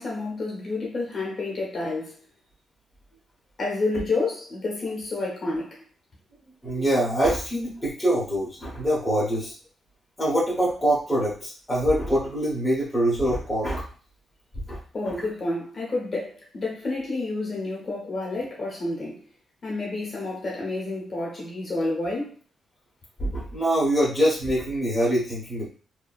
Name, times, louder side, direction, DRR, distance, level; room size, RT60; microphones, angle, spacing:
voice 1, 0.0-2.2 3.6-5.8 14.9-19.2 19.6-22.4, left 2 dB, 35° left, -3 dB, 0.9 m, -29 dB
voice 2, 6.6-9.5 10.2-13.8 14.7-14.8 23.2-25.7, equal, 5° left, -6 dB, 0.9 m, -24 dB
2.7 x 2.6 x 2.3 m, 0.38 s
wide cardioid pair, 170°, 0 cm